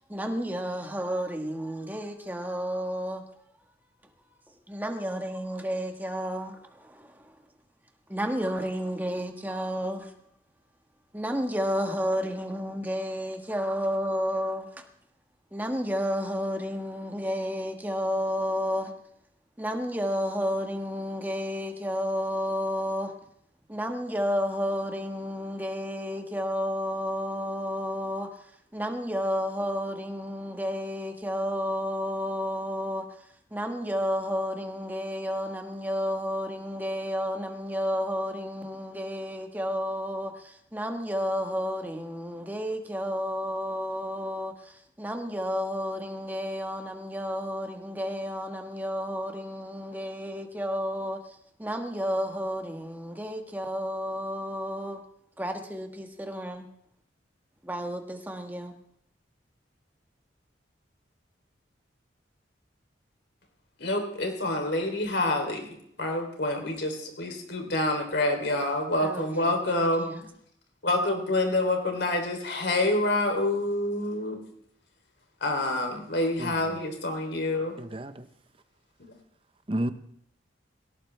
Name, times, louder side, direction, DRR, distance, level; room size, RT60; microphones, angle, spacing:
voice 1, 0.1-3.2 4.2-4.3 4.7-7.4 8.1-10.1 11.1-14.8 15.5-18.9 19.6-23.1 23.7-33.2 33.5-55.0 55.4-56.7 57.6-58.7 69.0-70.2, equal, 10° right, 1.5 m, -31 dB
voice 2, 63.8-70.0 70.8-74.4 75.4-77.8, left 1 dB, 65° left, 3.3 m, -27 dB
voice 3, 77.8-78.3 79.7-79.9, right 1 dB, 30° right, 0.8 m, -31 dB
18.0 x 18.0 x 3.4 m
head